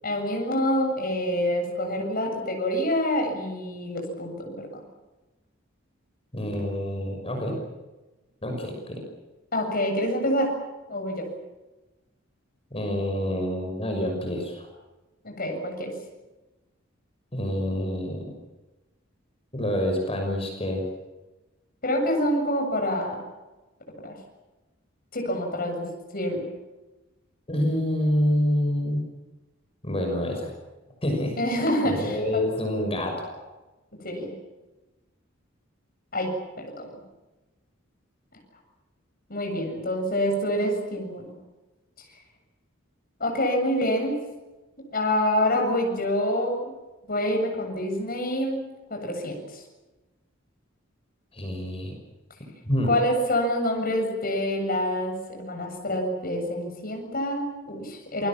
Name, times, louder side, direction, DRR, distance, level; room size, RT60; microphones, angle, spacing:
voice 1, 0.0-4.8 9.5-10.5 10.9-11.3 15.2-15.9 21.8-23.2 24.0-24.2 25.1-25.9 26.1-26.5 31.4-32.4 34.0-34.3 36.1-36.3 36.6-36.9 39.3-41.3 43.2-44.2 44.9-46.7 47.0-48.6 48.9-49.6 52.9-58.3, left 1 dB, 50° left, 2 dB, 7.6 m, -26 dB
voice 2, 6.3-7.5 8.4-9.0 12.7-14.7 17.3-18.3 19.5-20.8 27.5-29.0 29.8-30.5 31.0-31.3 31.8-33.4 51.3-51.9 52.6-52.9, left 1 dB, 30° left, 2 dB, 6.2 m, -27 dB
28.0 x 21.5 x 7.5 m, 1.1 s
head